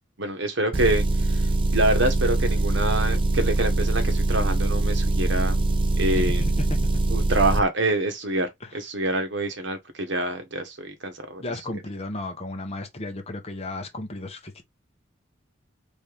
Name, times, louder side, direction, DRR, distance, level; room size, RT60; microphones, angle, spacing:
voice 1, 0.2-1.0 1.7-5.6 6.0-6.4 7.1-8.5 8.7-11.4, right 2 dB, 65° right, 1.3 m, -26 dB
Motor vehicle (road) / Engine, 0.7-7.6, right 2 dB, 25° right, 0.4 m, -23 dB
voice 2, 6.1-6.8 8.6-8.8 11.4-14.6, left 2 dB, 30° left, 0.9 m, -34 dB
4.3 x 3.4 x 3.4 m
head